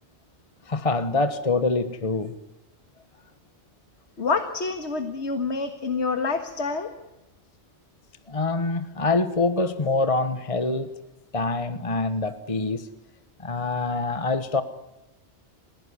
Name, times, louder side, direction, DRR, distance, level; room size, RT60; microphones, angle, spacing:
voice 1, 0.6-2.4 8.3-11.0 11.3-12.9 13.4-14.6, left 3 dB, 30° left, 10 dB, 1.2 m, -25 dB
voice 2, 4.2-6.9, left 4 dB, 70° left, 7 dB, 2.0 m, -27 dB
28.5 x 16.5 x 9.7 m, 0.94 s
omnidirectional pair, 1.2 m